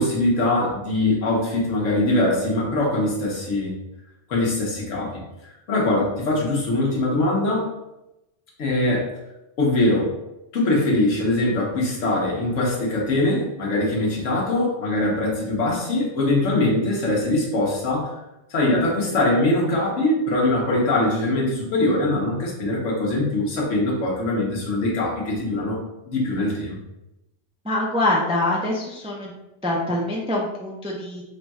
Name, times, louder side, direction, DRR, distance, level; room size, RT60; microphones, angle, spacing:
voice 1, 0.0-3.7 4.3-5.1 5.4-7.7 8.6-9.1 9.6-10.1 10.5-18.1 18.5-25.8 26.1-26.8, left 2 dB, 80° left, -2 dB, 1.4 m, -22 dB
voice 2, 27.6-29.3 29.6-31.2, left 1 dB, 10° right, -3 dB, 0.3 m, -24 dB
3.7 x 2.3 x 4.1 m, 0.92 s
omnidirectional pair, 1.3 m